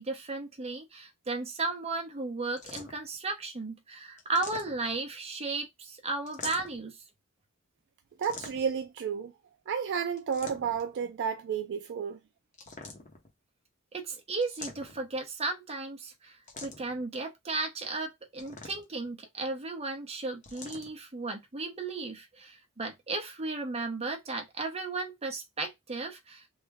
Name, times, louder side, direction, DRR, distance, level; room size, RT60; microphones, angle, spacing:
voice 1, 0.0-7.0 13.9-26.5, right 3 dB, 30° right, 0.8 m, -35 dB
sound 1, 2.6-3.2 4.2-5.1 6.3-6.9 8.2-8.9 10.2-10.9 12.5-13.3 14.4-15.2 16.5-17.0 18.4-19.1 20.4-20.9, left 3 dB, 35° left, 0.8 m, -44 dB
voice 2, 8.2-9.3 9.7-12.2, right 7 dB, 55° right, 0.3 m, -32 dB
3.2 x 2.1 x 3.5 m
head